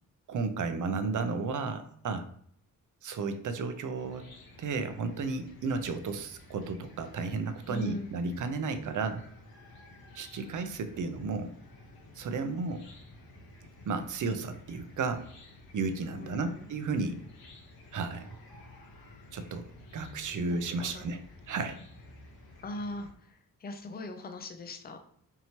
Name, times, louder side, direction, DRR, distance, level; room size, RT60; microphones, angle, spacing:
voice 1, 0.3-2.3 3.0-4.2 4.6-9.2 10.1-11.5 12.2-12.8 13.9-15.3 15.7-17.2 17.9-18.4 19.3-19.7 19.9-21.2 21.5-21.8, right 4 dB, 60° right, 9 dB, 0.5 m, -33 dB
Chicken rooster / Cricket, 4.0-23.1, left 2 dB, 90° left, 1.0 m, -53 dB
voice 2, 7.7-8.2 16.1-16.7 20.3-21.1 22.6-25.0, left 1 dB, 25° left, 6 dB, 0.4 m, -40 dB
4.6 x 3.0 x 2.8 m, 0.63 s
wide cardioid pair, 135°, 36 cm